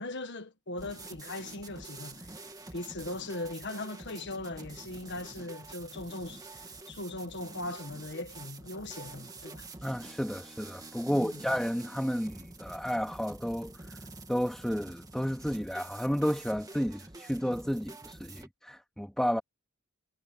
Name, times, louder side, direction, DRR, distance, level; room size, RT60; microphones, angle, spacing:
voice 1, 0.0-2.3 2.7-9.7 11.1-11.4, left 2 dB, 55° left, 1.6 m, -39 dB
sound 1, 0.8-18.5, right 2 dB, 15° right, 2.0 m, -47 dB
voice 2, 9.8-14.0 14.3-19.4, equal, 5° left, 2.3 m, -32 dB
head